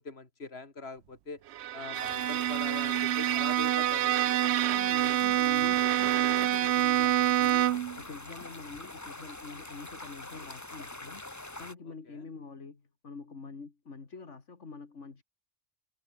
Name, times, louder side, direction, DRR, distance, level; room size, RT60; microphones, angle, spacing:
voice 1, 0.0-1.4 1.7-4.4 12.1-12.2, left 3 dB, 60° left, 3.2 m, -42 dB
Bowed string instrument, 1.5-8.0, right 13 dB, 75° right, 0.8 m, -27 dB
sound 1, 1.9-11.7, left 2 dB, 15° left, 1.3 m, -44 dB
voice 2, 4.7-11.2 11.6-15.2, left 4 dB, 90° left, 2.6 m, -46 dB
omnidirectional pair, 1.2 m